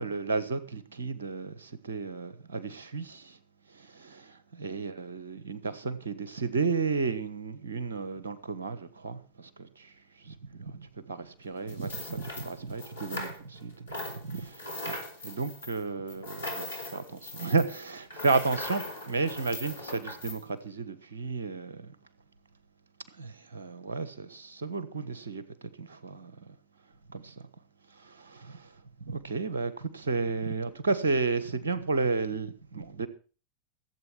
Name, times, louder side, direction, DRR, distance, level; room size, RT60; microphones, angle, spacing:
voice 1, 0.0-3.4 3.7-15.0 15.2-21.9 23.1-26.5 27.1-27.5 27.9-28.7 29.0-33.1, right 4 dB, 75° right, 1.3 m, -33 dB
sound 1, 11.7-13.6 13.9-20.4, left 2 dB, 75° left, 3.9 m, -40 dB
15.5 x 8.2 x 6.1 m
figure-of-eight pair, 90°, 0 cm